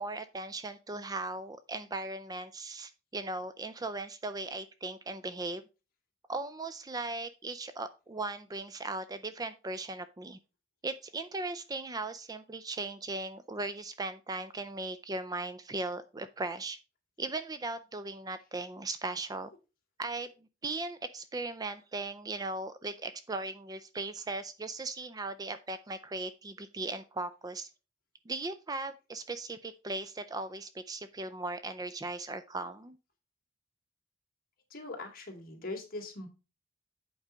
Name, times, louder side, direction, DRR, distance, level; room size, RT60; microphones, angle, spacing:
voice 1, 0.0-5.6 6.3-10.4 10.8-16.8 17.2-19.5 20.0-20.3 20.6-27.7 28.3-33.0, right 2 dB, 20° right, 12 dB, 0.4 m, -38 dB
voice 2, 34.7-36.3, left 2 dB, 45° left, 2 dB, 2.5 m, -41 dB
8.1 x 4.7 x 5.0 m, 0.31 s
head